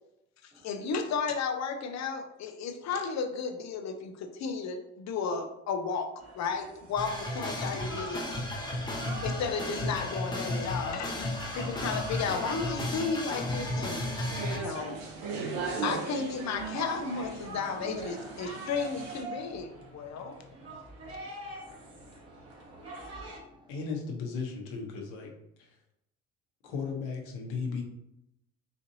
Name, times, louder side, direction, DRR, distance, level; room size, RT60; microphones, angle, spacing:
voice 1, 0.4-8.4 9.2-14.0 14.5-15.0 15.8-20.4, left 5 dB, 45° left, 6 dB, 0.7 m, -34 dB
sound 1, 6.2-23.4, right 2 dB, 40° right, 1.3 m, -45 dB
sound 2, 7.0-14.6, left 1 dB, 10° left, 0.8 m, -34 dB
sound 3, 14.0-19.2, right 4 dB, 65° right, 1.0 m, -38 dB
voice 2, 21.6-23.7, equal, 15° right, 2 dB, 0.4 m, -58 dB
voice 3, 23.7-25.3 25.6-25.7 26.6-27.8, left 5 dB, 75° left, 1 dB, 1.0 m, -35 dB
4.3 x 2.6 x 2.7 m, 0.83 s
hypercardioid pair, 65°, 37 cm